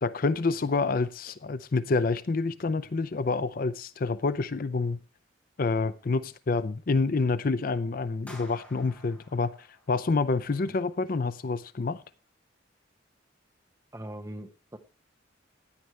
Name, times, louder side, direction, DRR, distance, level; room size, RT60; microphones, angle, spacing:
voice 1, 0.0-5.0 5.6-12.0, left 3 dB, 45° left, 0.5 m, -28 dB
sound 1, 8.3-10.5, left 1 dB, 10° left, 5.4 m, -51 dB
voice 2, 13.9-14.8, right 1 dB, 15° right, 1.0 m, -41 dB
15.5 x 10.0 x 3.2 m
head